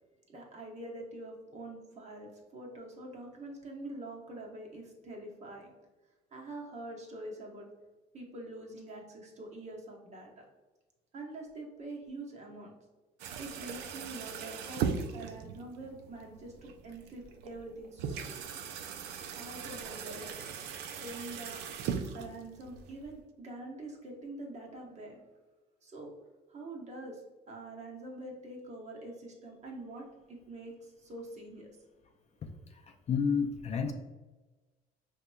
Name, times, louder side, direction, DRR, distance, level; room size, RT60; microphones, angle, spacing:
voice 1, 0.3-5.7 6.3-7.7 8.1-10.5 11.1-12.7 13.4-14.8 15.1-18.3 19.3-20.3 21.0-21.6 22.1-25.2 25.8-26.1 26.5-27.2 27.5-31.7, right 2 dB, 40° right, -1 dB, 1.0 m, -45 dB
sound 1, 13.2-23.2, right 7 dB, 85° right, 0.4 m, -39 dB
voice 2, 33.1-33.9, left 6 dB, 40° left, 4 dB, 0.4 m, -29 dB
5.1 x 3.0 x 2.3 m, 1.2 s
cardioid pair, 110°, 17 cm